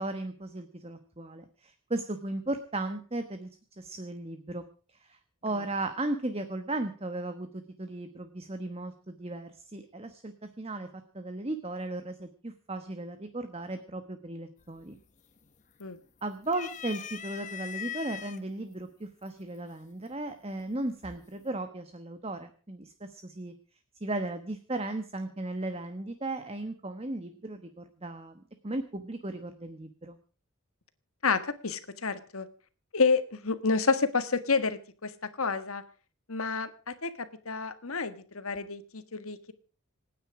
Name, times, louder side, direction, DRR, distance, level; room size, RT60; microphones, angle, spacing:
voice 1, 0.0-4.6 4.9-10.9 11.1-15.0 16.2-23.5 24.0-30.2, right 2 dB, 30° right, 9 dB, 1.2 m, -36 dB
sound 1, 14.6-15.0 15.4-16.1 16.5-18.4 19.3-19.4 20.6-21.1, left 9 dB, 35° left, 1.0 m, -40 dB
voice 2, 31.2-32.5 32.9-35.1 35.4-35.8 36.3-39.4, left 4 dB, 85° left, 11 dB, 1.6 m, -29 dB
27.0 x 9.5 x 4.9 m, 0.38 s
head